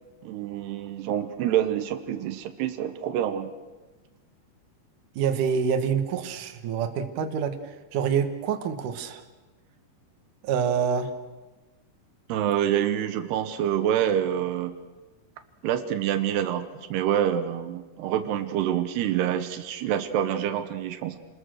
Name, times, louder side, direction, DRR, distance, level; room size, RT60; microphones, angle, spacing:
voice 1, 0.2-3.5 12.3-14.8 15.6-21.2, right 10 dB, 80° right, 10 dB, 3.1 m, -27 dB
voice 2, 5.2-9.2 10.4-11.1, right 7 dB, 60° right, 6 dB, 2.5 m, -26 dB
27.5 x 20.5 x 6.4 m, 1.2 s
omnidirectional pair, 4.7 m